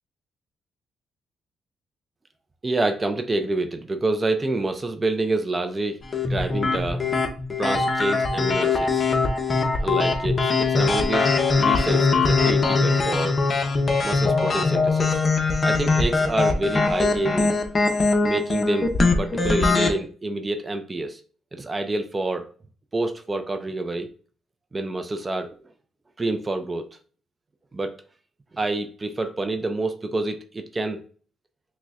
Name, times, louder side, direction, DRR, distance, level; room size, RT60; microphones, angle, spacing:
voice 1, 2.6-6.0 6.3-7.0 7.6-9.1 9.8-11.3 11.6-13.4 14.0-15.2 15.6-17.5 18.2-18.9 19.2-21.2 21.5-22.5 22.9-24.1 24.7-25.6 26.2-26.9 27.7-27.9 28.5-31.0, right 2 dB, 25° right, 7 dB, 0.3 m, -27 dB
sound 1, 6.1-19.9, left 3 dB, 35° left, 0.6 m, -21 dB
5.9 x 2.1 x 2.4 m, 0.43 s
cardioid pair, 90°, 0 cm